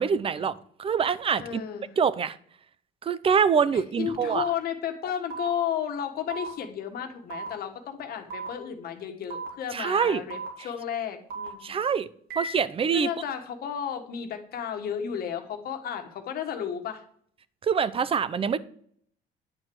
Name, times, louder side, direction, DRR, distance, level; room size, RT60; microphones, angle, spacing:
voice 1, 0.0-1.6 2.0-2.4 3.0-4.4 9.7-10.2 11.6-12.1 12.4-13.1 17.6-18.6, right 6 dB, 35° right, 17 dB, 0.7 m, -25 dB
voice 2, 1.4-2.0 3.7-11.7 12.9-17.0, left 8 dB, 65° left, 6 dB, 1.6 m, -33 dB
sound 1, 4.3-4.5 5.3-5.5 6.3-6.5 7.3-7.5 8.3-8.5 9.3-9.5 10.3-10.5 11.3-11.5 12.3-12.5, right 4 dB, 65° right, 3.3 m, -35 dB
9.9 x 4.5 x 7.8 m, 0.62 s
cardioid pair, 110°, 17 cm